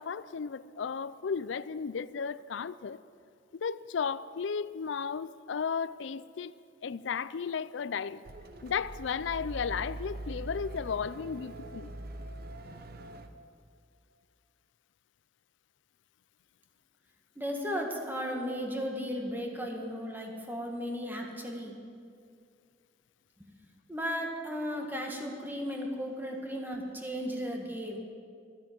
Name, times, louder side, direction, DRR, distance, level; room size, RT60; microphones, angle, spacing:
voice 1, 0.0-3.0 3.5-6.5 6.8-8.2 8.6-11.9, left 6 dB, 75° left, 17 dB, 0.4 m, -34 dB
sound 1, 8.2-13.3, right 1 dB, 55° right, 0.8 m, -42 dB
voice 2, 17.4-21.7 23.9-28.0, equal, 10° right, 1 dB, 1.8 m, -35 dB
13.0 x 10.5 x 9.2 m, 2.3 s
head